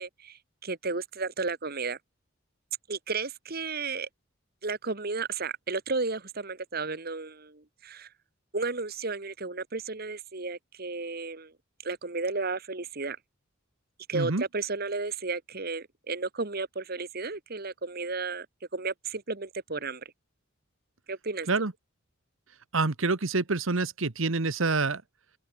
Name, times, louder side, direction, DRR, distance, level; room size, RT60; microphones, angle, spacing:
voice 1, 0.0-2.0 2.9-4.1 4.6-8.1 8.5-11.5 11.8-13.2 14.1-18.5 18.7-20.0 21.1-21.5, right 3 dB, 50° right, 1.7 m, -33 dB
voice 2, 14.1-14.4 21.5-21.7 22.7-25.0, right 3 dB, 70° right, 1.3 m, -27 dB
head